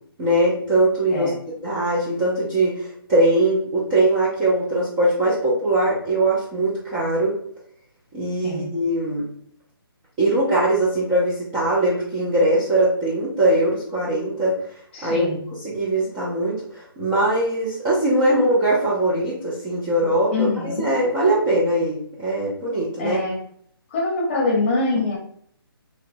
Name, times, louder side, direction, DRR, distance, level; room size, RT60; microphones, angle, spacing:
voice 1, 0.2-1.3 1.6-7.4 8.1-9.2 10.2-14.5 15.0-15.3 15.6-23.2, right 1 dB, 10° right, -9 dB, 0.3 m, -21 dB
voice 2, 14.9-15.4 20.3-20.8 23.0-23.4 23.9-25.2, left 3 dB, 30° left, -2 dB, 0.7 m, -24 dB
2.9 x 2.0 x 2.6 m, 0.63 s
hypercardioid pair, 160°, 13 cm